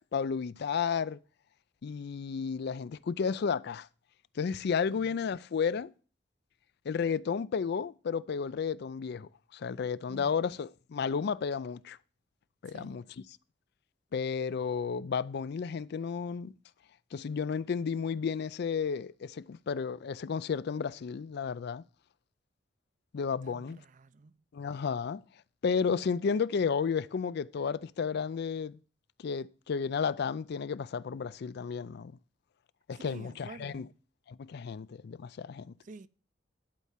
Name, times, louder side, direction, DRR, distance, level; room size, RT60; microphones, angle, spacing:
voice 1, 0.1-1.2 1.8-3.9 4.4-5.9 6.9-12.0 12.6-13.0 14.1-16.5 17.1-21.8 23.1-23.8 24.5-25.2 25.6-28.8 29.2-32.1 32.9-33.8 34.3-35.7, left 6 dB, 60° left, 0.4 m, -32 dB
voice 2, 10.1-10.4 12.6-13.1 23.4-24.4 32.9-33.9 35.8-36.1, right 3 dB, 45° right, 0.5 m, -50 dB
11.5 x 4.3 x 7.3 m
head